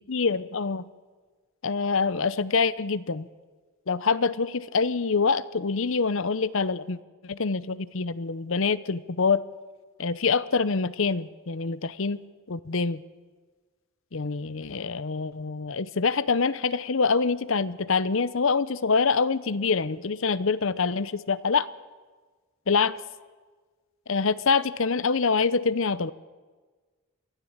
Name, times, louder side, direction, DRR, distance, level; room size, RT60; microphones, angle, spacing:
voice 1, 0.1-0.8 1.6-3.3 3.9-7.0 7.2-9.4 10.0-13.0 14.1-21.7 22.7-22.9 24.1-26.1, left 4 dB, 65° left, 17 dB, 0.7 m, -25 dB
23.0 x 15.0 x 8.8 m, 1.4 s
head